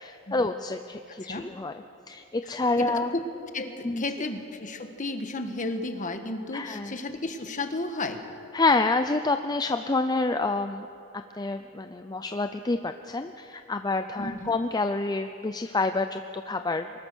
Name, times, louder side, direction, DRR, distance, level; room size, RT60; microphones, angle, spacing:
voice 1, 0.0-1.7 2.1-3.1 3.8-4.0 6.5-7.0 8.5-10.9 11.3-17.0, left 3 dB, 20° left, 8 dB, 0.5 m, -28 dB
voice 2, 1.1-1.5 2.8-3.2 3.5-8.2 14.2-14.5, left 2 dB, 40° left, 7 dB, 1.5 m, -33 dB
24.5 x 20.5 x 6.3 m, 2.7 s
head